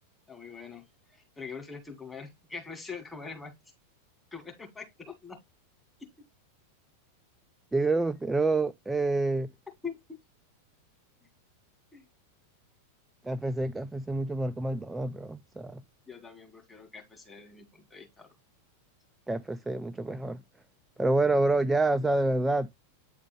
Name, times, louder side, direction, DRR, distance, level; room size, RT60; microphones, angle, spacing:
voice 1, 0.3-0.8 1.1-3.5 4.3-5.4 9.8-10.0 11.9-12.1 16.1-18.3, left 5 dB, 10° left, 2.1 m, -43 dB
voice 2, 7.7-9.5 13.2-15.8 19.3-20.4 21.0-22.7, right 2 dB, 10° right, 0.4 m, -27 dB
8.8 x 3.6 x 3.3 m
figure-of-eight pair, 90°, 0 cm